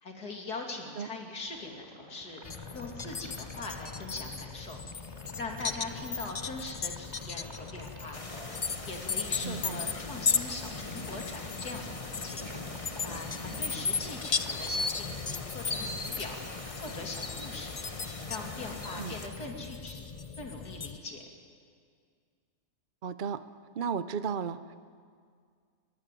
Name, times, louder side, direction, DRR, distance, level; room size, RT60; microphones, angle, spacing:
voice 1, 0.0-2.4 2.7-4.8 5.4-8.2 8.8-12.4 13.0-16.4 16.8-17.8 18.3-21.2, left 3 dB, 85° left, 1 dB, 3.3 m, -41 dB
sound 1, 1.5-17.4, equal, 15° right, 4.1 m, -49 dB
sound 2, 2.4-21.0, left 5 dB, 50° left, 0.4 m, -37 dB
sound 3, 8.1-19.3, left 2 dB, 25° left, 1.4 m, -40 dB
voice 2, 9.4-9.8 19.0-19.2 23.0-23.4 23.7-24.7, right 6 dB, 50° right, 13 dB, 0.6 m, -34 dB
23.0 x 19.0 x 9.2 m, 2.1 s
omnidirectional pair, 1.6 m